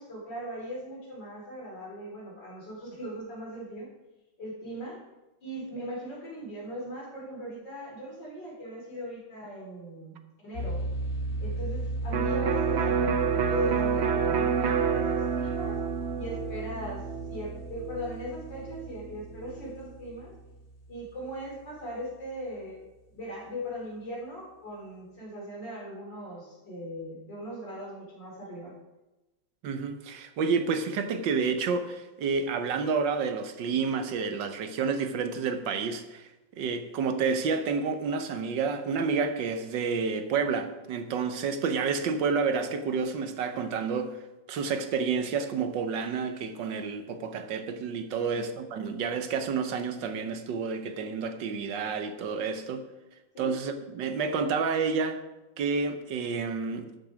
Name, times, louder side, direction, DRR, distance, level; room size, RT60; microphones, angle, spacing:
voice 1, 0.0-3.9 4.4-5.0 5.4-10.8 11.4-15.8 16.2-20.3 20.9-22.8 23.1-28.8 48.2-48.5 53.3-53.5, equal, 70° left, 4.3 m, -39 dB
sound 1, 10.5-21.4, right 2 dB, 45° left, 2.2 m, -36 dB
Electric guitar, 12.1-19.8, right 7 dB, 90° right, 0.5 m, -29 dB
voice 2, 29.6-36.3 36.6-44.2 44.5-52.8 53.4-55.2 55.6-56.8, right 5 dB, 75° right, 1.6 m, -29 dB
13.0 x 6.7 x 5.0 m
omnidirectional pair, 2.0 m